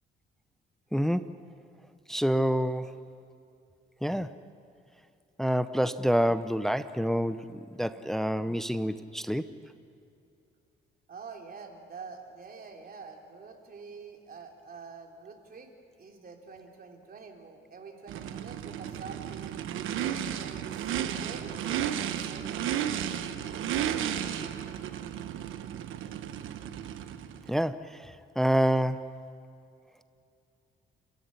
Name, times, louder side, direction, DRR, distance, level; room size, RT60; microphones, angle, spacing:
voice 1, 0.9-1.4 2.1-3.0 4.0-4.3 5.4-9.5 27.5-29.1, equal, ahead, 12 dB, 0.8 m, -28 dB
voice 2, 11.1-15.7 16.0-19.6 20.4-22.9, right 5 dB, 50° right, 2 dB, 3.6 m, -46 dB
Race car auto racing / Idling / Accelerating revving vroom, 18.1-27.5, right 10 dB, 85° right, 1.2 m, -33 dB
30.0 x 14.5 x 9.9 m, 2.6 s
cardioid pair, 90°, 20 cm